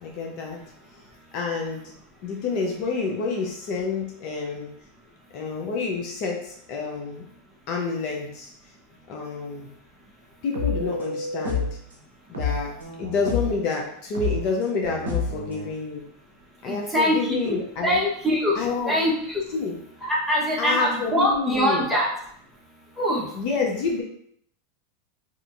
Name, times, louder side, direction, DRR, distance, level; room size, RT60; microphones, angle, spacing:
voice 1, 0.0-0.6 1.3-1.9 2.2-4.7 5.3-7.2 7.7-8.5 9.1-9.7 10.4-11.8 12.3-12.7 13.0-16.0 16.6-18.0 18.6-19.0 19.5-19.7 20.6-21.9 23.3-24.0, left 4 dB, 55° left, 0 dB, 0.5 m, -28 dB
sound 1, 10.5-11.8 12.3-13.6 14.1-15.7, left 4 dB, 90° right, 0.6 m, -29 dB
voice 2, 16.7-17.5 17.8-19.4 20.0-22.1 23.0-23.3, equal, ahead, -5 dB, 0.9 m, -23 dB
2.8 x 2.5 x 2.4 m, 0.67 s
hypercardioid pair, 95°, 0 cm